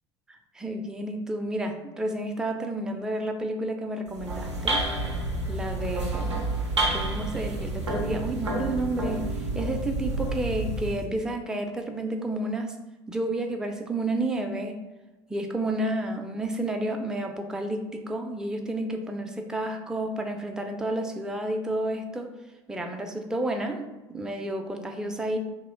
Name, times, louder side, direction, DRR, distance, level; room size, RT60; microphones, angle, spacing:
voice 1, 0.3-4.9 5.5-6.5 6.9-9.3 9.5-12.8 13.1-14.8 15.3-22.3 22.7-25.4, right 1 dB, 5° right, 4 dB, 0.3 m, -31 dB
sound 1, 4.1-11.1, right 2 dB, 90° right, 0.4 m, -29 dB
2.9 x 2.0 x 3.7 m, 1.1 s
figure-of-eight pair, 65°, 15 cm